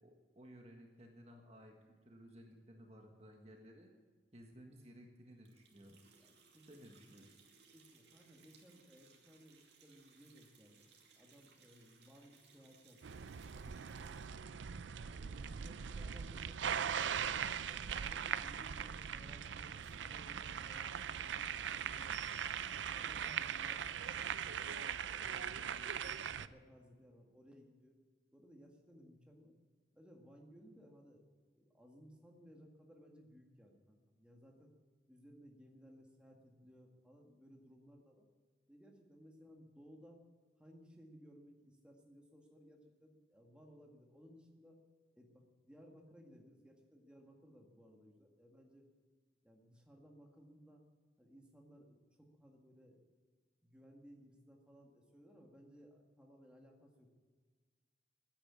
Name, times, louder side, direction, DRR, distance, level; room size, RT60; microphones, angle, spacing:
voice 1, 0.0-3.9 4.3-6.0 6.6-7.3, equal, 35° right, 2 dB, 1.6 m, -57 dB
sound 1, 5.4-14.5 19.6-20.0, right 5 dB, 70° right, 2.5 m, -66 dB
voice 2, 6.2-6.8 7.7-14.5 15.1-17.1 17.7-22.3 22.7-24.7 25.2-28.0 28.3-29.5 29.9-31.2 31.5-34.7 35.1-38.3 38.7-40.2 40.6-44.8 45.1-48.9 49.4-50.8 51.2-53.0 53.6-57.2, equal, 5° right, 0 dB, 1.9 m, -61 dB
sound 2, 13.0-26.5, right 8 dB, 85° right, 0.5 m, -40 dB
15.0 x 10.0 x 8.6 m, 1.5 s
head